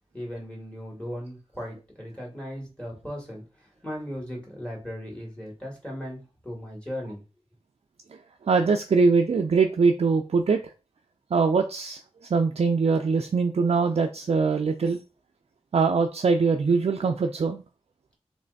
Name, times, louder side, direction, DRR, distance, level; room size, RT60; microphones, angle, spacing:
voice 1, 0.1-7.2, equal, 10° left, 1.9 m, -37 dB
voice 2, 8.1-10.7 11.3-15.0 15.7-17.6, right 4 dB, 65° right, 0.4 m, -23 dB
3.2 x 3.2 x 4.0 m
wide cardioid pair, 85°, 11 cm